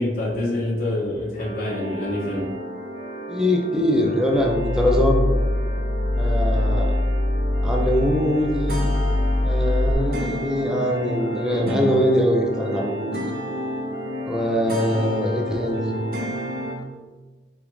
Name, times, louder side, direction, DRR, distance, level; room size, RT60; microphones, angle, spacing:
voice 1, 0.0-2.5, left 1 dB, 50° left, -6 dB, 1.3 m, -26 dB
sound 1, 1.4-16.7, equal, 55° right, 0.7 m, -32 dB
voice 2, 3.3-5.3 6.2-6.9 7.6-8.9 9.4-13.3 14.2-15.9, equal, 5° right, -1 dB, 0.4 m, -22 dB
sound 2, 4.3-9.9, left 1 dB, 80° left, 0.5 m, -23 dB
5.0 x 2.5 x 3.0 m, 1.3 s
head